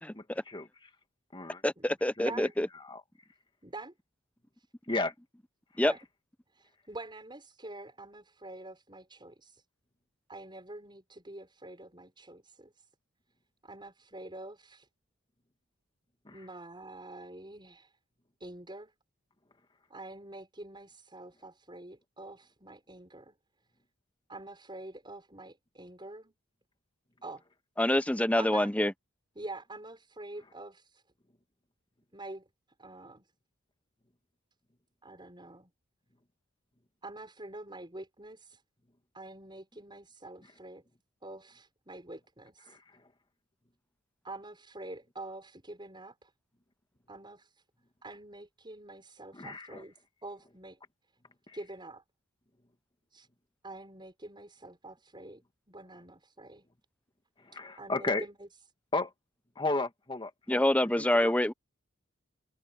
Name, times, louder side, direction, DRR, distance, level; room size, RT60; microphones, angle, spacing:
voice 1, 0.1-0.7 1.3-1.6 2.2-2.5 2.8-3.0 4.9-5.1 16.3-16.4 42.7-42.8 49.3-49.8 51.5-51.6 57.6-58.3 58.9-59.1 59.6-60.7 61.0-61.3, left 2 dB, 25° left, 2.0 m, -34 dB
voice 2, 1.6-2.7 5.8-5.9 27.8-28.9 60.5-61.5, left 1 dB, 5° left, 0.8 m, -26 dB
voice 3, 3.6-3.9 4.6-4.7 5.8-6.0 6.5-9.6 10.3-12.9 13.6-14.9 16.3-18.0 18.4-18.9 19.9-23.4 24.3-26.3 27.2-27.4 28.3-28.7 29.3-31.0 32.1-32.5 32.8-33.3 35.0-35.7 37.0-38.6 39.1-40.8 41.2-42.8 44.2-46.3 47.1-47.6 48.0-49.9 50.2-50.8 51.5-52.0 53.1-53.3 53.6-55.4 55.7-56.7 57.5-58.5, right 2 dB, 20° right, 6.3 m, -46 dB
head